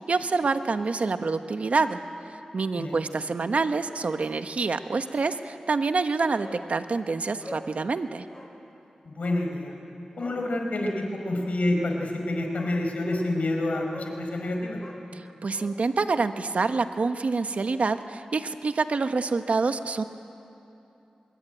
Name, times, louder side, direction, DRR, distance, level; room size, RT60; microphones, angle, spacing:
voice 1, 0.0-2.0 2.5-8.2 15.1-20.0, right 4 dB, 65° right, 9 dB, 1.2 m, -27 dB
Bark, 6.4-6.7 7.0-7.1 7.4-7.7 8.3-8.6 9.2-9.5 10.1-10.4 12.0-12.1 12.5-12.8 13.1-13.3 13.9-14.2 14.7-15.8 16.1-16.2, left 1 dB, 25° left, 5.5 m, -44 dB
voice 2, 9.0-9.7 10.2-14.8, left 1 dB, 70° left, 2 dB, 4.7 m, -28 dB
25.0 x 22.0 x 9.1 m, 2.9 s
cardioid pair, 50°, 2 cm